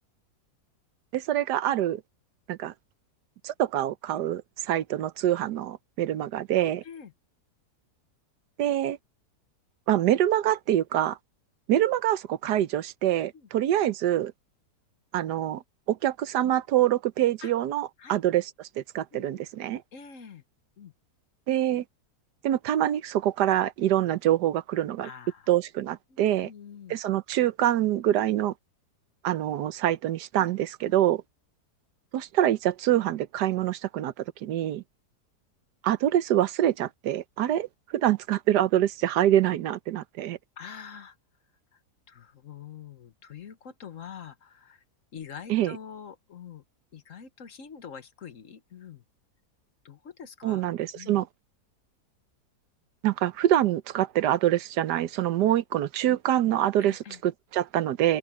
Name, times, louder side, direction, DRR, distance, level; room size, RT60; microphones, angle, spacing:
voice 1, 1.1-2.0 2.5-2.7 3.4-6.8 8.6-9.0 9.9-11.2 11.7-14.3 15.1-15.6 15.9-19.8 21.5-21.8 22.4-25.1 25.5-26.5 26.9-28.5 29.2-31.2 32.1-34.8 35.8-37.7 37.9-40.4 45.5-45.8 50.4-51.3 53.0-58.2, right 12 dB, 90° right, 1.4 m, -25 dB
voice 2, 19.1-19.5 19.9-20.4 20.8-20.9 25.0-25.5 26.1-27.0 30.3-30.5 30.8-31.1 40.6-41.2 41.7-41.8 42.1-44.8 45.1-46.6 46.9-49.0 49.8-50.6 50.9-51.2 53.9-54.0 56.8-57.2, left 7 dB, 55° left, 1.4 m, -45 dB
open air
omnidirectional pair, 1.7 m